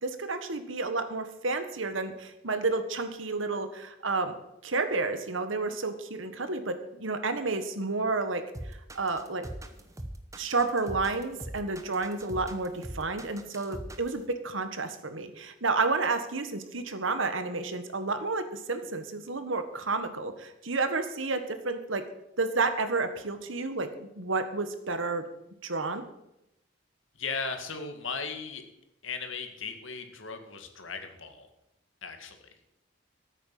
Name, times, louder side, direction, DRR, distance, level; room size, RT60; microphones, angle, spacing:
voice 1, 0.0-4.3 4.6-9.5 10.3-22.0 22.4-25.2 25.6-26.0, right 3 dB, 80° right, 9 dB, 1.6 m, -31 dB
sound 1, 8.5-14.2, right 1 dB, 15° right, 1.0 m, -41 dB
voice 2, 27.2-28.6 29.0-31.5 32.0-32.5, left 4 dB, 80° left, 6 dB, 2.0 m, -37 dB
13.5 x 9.2 x 7.6 m, 0.85 s
head